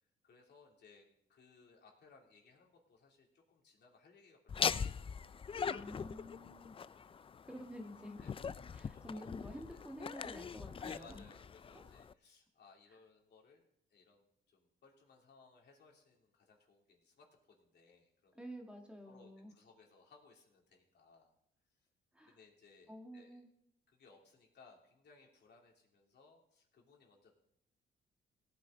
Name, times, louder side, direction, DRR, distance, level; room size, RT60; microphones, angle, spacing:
voice 1, 0.2-5.3 8.2-8.4 8.7-10.1 10.8-13.6 13.9-18.4 19.0-21.3 22.2-23.4 23.9-27.3, left 4 dB, 60° left, 0 dB, 3.1 m, -63 dB
Laughter, 4.5-12.1, left 6 dB, 30° left, 0.4 m, -41 dB
voice 2, 5.6-7.0 7.4-8.2 8.7-11.2 18.3-19.5 22.1-22.4 22.9-23.5, equal, 5° right, 2 dB, 1.7 m, -50 dB
17.5 x 9.0 x 3.9 m, 0.75 s
cardioid pair, 90°, 20 cm